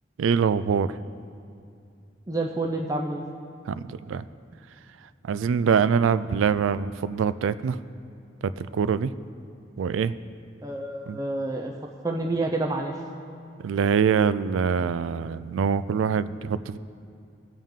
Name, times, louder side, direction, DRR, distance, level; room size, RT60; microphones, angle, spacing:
voice 1, 0.2-0.9 3.7-4.2 5.2-7.8 8.4-9.1 9.8-10.1 11.1-11.2 13.6-16.8, right 6 dB, 90° right, 15 dB, 0.3 m, -24 dB
voice 2, 2.3-3.2 10.6-11.7 12.0-12.9, right 2 dB, 15° right, 1 dB, 0.5 m, -28 dB
17.0 x 7.3 x 3.7 m, 2.5 s
head